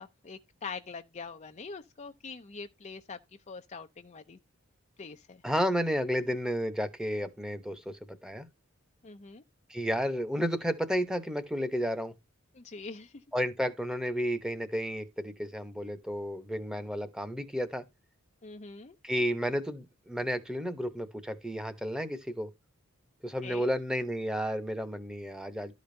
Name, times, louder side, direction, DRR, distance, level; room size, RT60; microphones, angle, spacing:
voice 1, 0.0-3.2 3.5-4.4 5.0-5.4 9.0-9.4 12.5-13.1 18.4-18.9 23.4-23.7, left 4 dB, 35° left, 0.5 m, -43 dB
voice 2, 5.4-8.5 9.7-12.1 13.3-17.8 19.0-22.5 23.2-25.7, equal, 5° right, 1.0 m, -32 dB
12.5 x 5.1 x 2.7 m
head